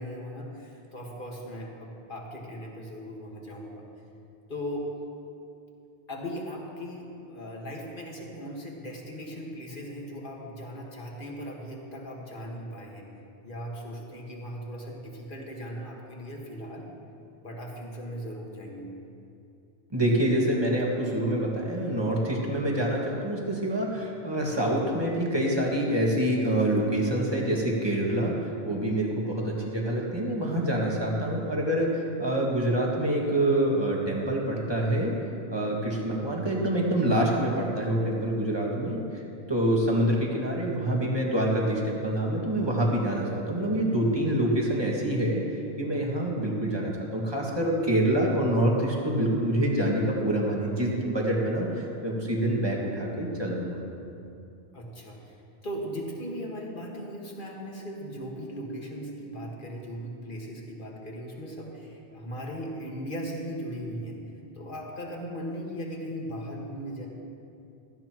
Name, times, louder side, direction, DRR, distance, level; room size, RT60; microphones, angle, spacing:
voice 1, 0.0-3.8 4.5-5.0 6.1-13.1 13.4-16.9 17.4-18.9 54.7-55.4 55.6-64.2 64.5-67.1, equal, 50° left, -1 dB, 1.9 m, -38 dB
voice 2, 19.9-35.1 35.5-39.2 39.5-53.8, right 1 dB, 25° right, -3 dB, 1.9 m, -26 dB
17.0 x 14.0 x 3.0 m, 2.6 s
omnidirectional pair, 1.1 m